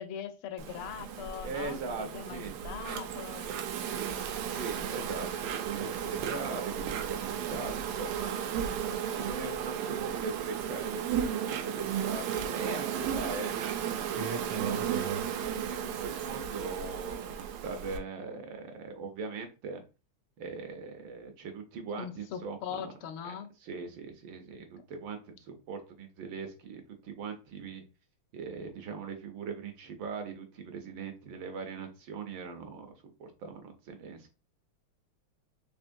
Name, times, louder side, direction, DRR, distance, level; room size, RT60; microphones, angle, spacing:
voice 1, 0.0-3.5 21.9-23.5 24.8-24.9, left 8 dB, 85° left, 8 dB, 1.5 m, -41 dB
Insect, 0.6-18.0, right 8 dB, 90° right, 1.5 m, -34 dB
voice 2, 1.4-2.6 3.8-4.2 4.5-13.5 14.1-19.8 20.4-22.8 23.2-23.3 23.6-27.8 28.3-34.3, right 4 dB, 70° right, 6 dB, 1.3 m, -40 dB
4.4 x 2.8 x 2.6 m, 0.32 s
omnidirectional pair, 2.4 m